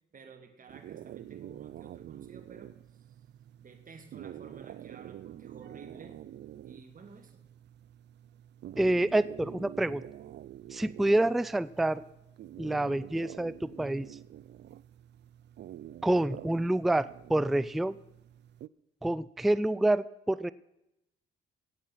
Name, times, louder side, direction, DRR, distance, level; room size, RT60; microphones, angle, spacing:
voice 1, 0.1-3.0 3.6-6.2 6.6-7.5, right 5 dB, 45° right, 5 dB, 2.2 m, -52 dB
sound 1, 0.7-18.7, right 12 dB, 60° right, 0.5 m, -47 dB
voice 2, 8.8-10.0 10.7-12.0 12.6-14.2 16.0-18.0 19.0-20.5, right 1 dB, ahead, 17 dB, 0.3 m, -27 dB
16.5 x 8.3 x 5.7 m, 0.86 s
cardioid pair, 90°, 20 cm